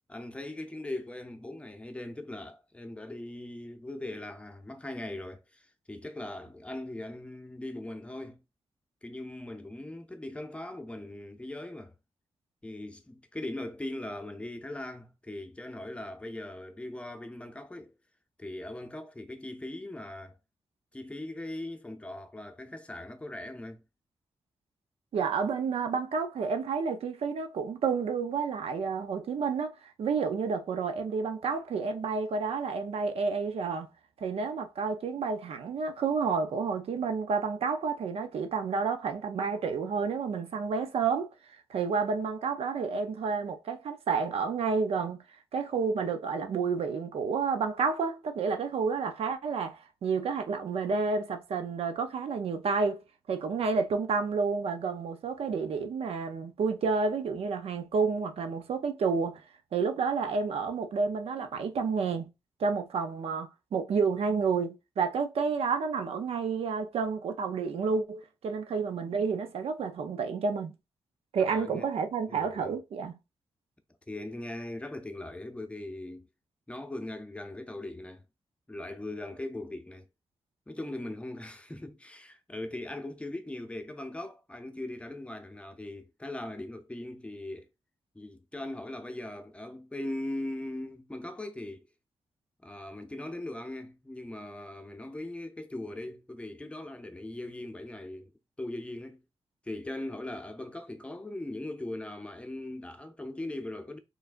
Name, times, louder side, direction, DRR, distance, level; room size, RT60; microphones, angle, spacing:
voice 1, 0.1-8.4 9.0-11.9 12.6-17.9 18.4-20.4 20.9-23.8 71.3-71.9 72.3-72.8 74.1-76.3 76.7-78.2 78.7-80.1 80.7-87.7 88.1-91.9 92.6-98.3 98.6-99.2 99.6-104.0, left 1 dB, 10° left, 0.6 m, -40 dB
voice 2, 25.1-33.9 34.2-41.3 41.7-45.2 45.5-53.0 53.3-59.4 59.7-62.3 62.6-70.7 71.3-73.2, right 5 dB, 80° right, 0.6 m, -30 dB
4.5 x 3.2 x 2.5 m
wide cardioid pair, 100°, 10 cm